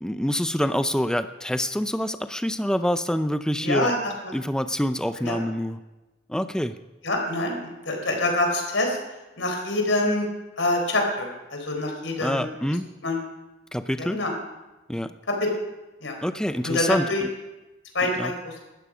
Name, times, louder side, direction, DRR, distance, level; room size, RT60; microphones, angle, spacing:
voice 1, 0.0-3.9 4.3-5.8 6.3-6.7 12.2-12.9 13.7-14.2 14.9-15.1 16.2-17.3 18.0-18.3, equal, 5° left, 10 dB, 0.5 m, -26 dB
voice 2, 3.6-4.3 5.2-5.4 7.0-9.0 9.4-10.3 10.6-12.5 13.0-13.2 14.0-14.3 15.3-15.5 16.0-16.2 16.6-17.2 17.9-18.5, left 2 dB, 85° left, 3 dB, 4.2 m, -26 dB
19.5 x 13.5 x 5.1 m, 1.1 s
head